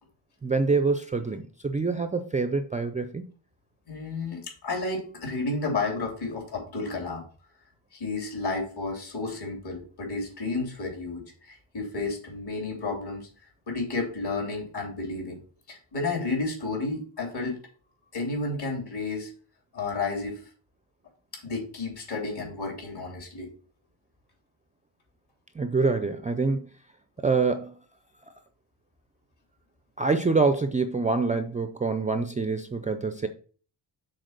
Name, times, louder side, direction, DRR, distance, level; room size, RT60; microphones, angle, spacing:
voice 1, 0.4-3.3 25.5-26.7 27.2-27.8 30.0-33.3, right 4 dB, 15° right, 0.4 m, -26 dB
voice 2, 3.9-7.2 7.9-13.3 13.7-15.4 15.7-17.6 18.1-19.3 19.7-20.5 21.3-23.5, left 3 dB, 55° left, 3.4 m, -32 dB
6.5 x 4.2 x 6.5 m
wide cardioid pair, 155°, 46 cm